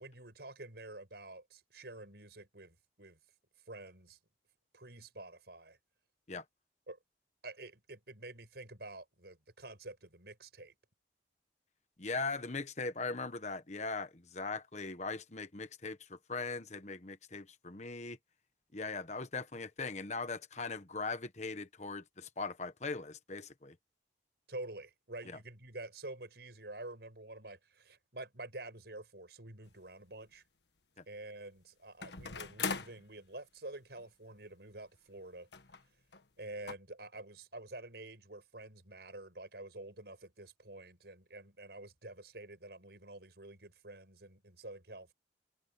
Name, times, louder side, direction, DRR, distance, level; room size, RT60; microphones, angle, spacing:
voice 1, 0.0-3.2 3.7-4.2 4.7-5.8 6.9-7.0 7.4-10.7 24.5-30.4 31.1-35.5 36.4-45.1, right 2 dB, 65° right, 5.8 m, -48 dB
voice 2, 12.0-18.2 18.7-23.7, left 3 dB, 40° left, 1.2 m, -40 dB
sound 1, 29.7-29.8 32.0-33.0 34.0-34.1 34.3-34.4 35.5-35.8 36.1-36.2 36.7-36.8, left 5 dB, 75° left, 1.5 m, -39 dB
head